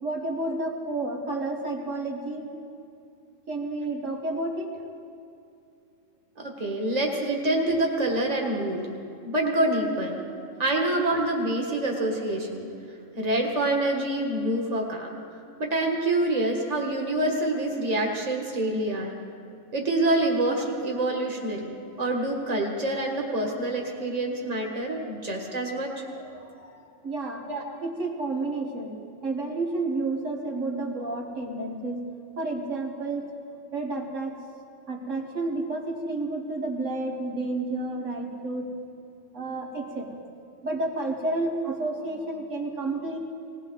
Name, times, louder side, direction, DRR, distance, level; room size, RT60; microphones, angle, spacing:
voice 1, 0.0-2.5 3.5-4.8 26.1-27.5 27.8-29.0 29.2-32.1 32.4-33.3 33.7-34.4 34.9-38.7 39.3-40.2 40.6-43.2, right 2 dB, 75° right, 0 dB, 1.8 m, -31 dB
voice 2, 6.4-8.9 9.2-10.2 10.6-12.7 13.2-15.2 15.6-19.2 19.7-26.0 27.5-27.6, right 1 dB, 30° right, 0 dB, 1.8 m, -26 dB
19.5 x 18.0 x 4.0 m, 2.5 s
omnidirectional pair, 1.3 m